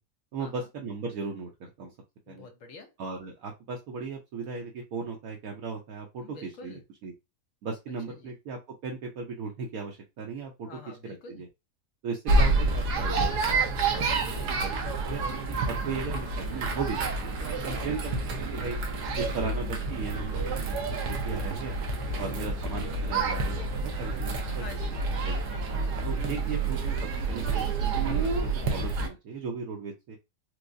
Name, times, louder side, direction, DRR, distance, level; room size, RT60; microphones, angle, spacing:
voice 1, 0.3-1.9 2.3-2.5 3.0-7.1 7.6-10.7 11.0-11.5 12.0-13.6 13.9-15.2 15.7-18.1 18.4-18.8 19.2-20.8 21.1-21.8 22.2-24.6 25.2-25.4 26.0-26.8 27.3-30.2, right 4 dB, 70° right, 1.1 m, -37 dB
voice 2, 2.3-2.9 6.2-6.8 8.1-8.3 10.7-11.4 14.1-14.9 17.4-17.8 22.1-22.8 24.5-25.3 26.4-26.8, left 4 dB, 60° left, 1.1 m, -47 dB
sound 1, 12.3-29.1, right 3 dB, 90° right, 1.3 m, -28 dB
4.5 x 2.0 x 2.5 m
omnidirectional pair, 1.7 m